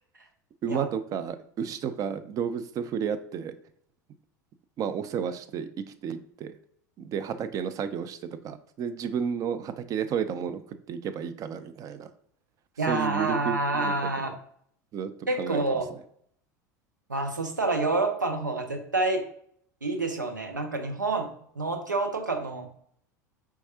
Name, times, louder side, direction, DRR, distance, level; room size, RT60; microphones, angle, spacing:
voice 1, 0.6-3.5 4.8-5.7 6.0-6.5 7.0-8.2 8.4-10.6 10.9-12.1 12.9-13.9 14.9-15.1 15.4-15.6, right 7 dB, 35° right, 10 dB, 0.4 m, -31 dB
voice 2, 12.8-14.3 15.3-15.9 17.1-19.2 19.8-21.3 21.6-22.7, right 3 dB, 90° right, 4 dB, 0.7 m, -28 dB
4.5 x 3.5 x 2.7 m, 0.65 s
figure-of-eight pair, 75°, 10 cm